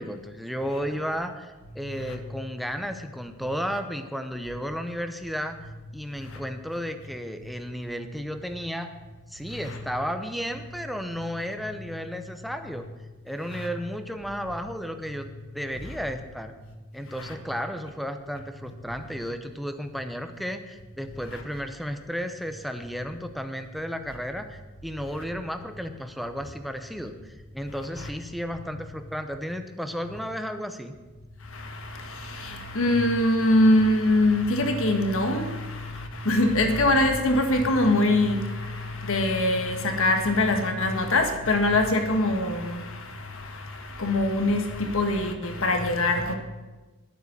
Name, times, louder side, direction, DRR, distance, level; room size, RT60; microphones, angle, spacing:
voice 1, 0.0-8.9 9.3-12.8 13.2-16.5 16.9-31.0, equal, ahead, 0.7 m, -33 dB
voice 2, 31.5-46.3, left 1 dB, 65° left, 1.5 m, -24 dB
11.0 x 9.3 x 6.8 m
head